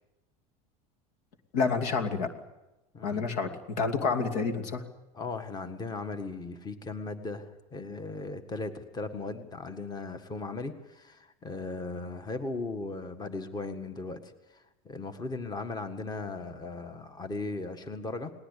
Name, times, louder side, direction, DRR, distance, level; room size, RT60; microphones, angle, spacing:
voice 1, 1.5-2.3 3.0-4.8, left 5 dB, 80° left, 6 dB, 2.8 m, -29 dB
voice 2, 5.1-18.3, left 3 dB, 20° left, 8 dB, 1.8 m, -37 dB
20.0 x 19.0 x 8.5 m, 1.0 s
supercardioid pair, 115°, 19 cm